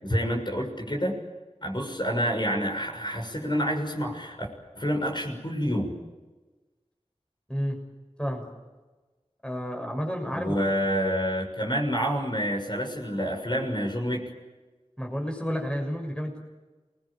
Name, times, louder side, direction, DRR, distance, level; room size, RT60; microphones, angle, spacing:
voice 1, 0.0-1.1 1.6-4.5 4.7-5.9 10.3-14.3, equal, 40° left, 1 dB, 6.6 m, -28 dB
voice 2, 9.4-10.5 15.0-16.4, equal, 10° left, 2 dB, 6.5 m, -31 dB
28.5 x 21.0 x 8.9 m, 1.2 s
wide cardioid pair, 55°, 12 cm